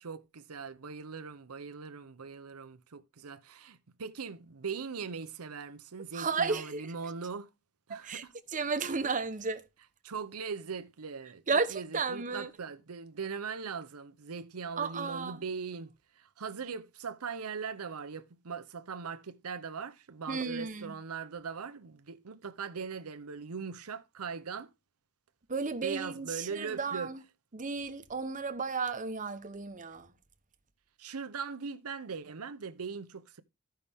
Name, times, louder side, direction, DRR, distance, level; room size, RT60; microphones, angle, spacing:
voice 1, 0.0-7.5 7.9-8.3 10.0-24.7 25.8-27.1 31.0-33.4, right 5 dB, 85° right, 0.7 m, -40 dB
voice 2, 6.1-6.9 7.9-8.2 8.5-9.6 11.5-12.5 14.8-15.4 20.3-20.9 25.5-27.2 27.5-30.1, right 4 dB, 35° right, 1.0 m, -33 dB
14.0 x 5.7 x 3.5 m
head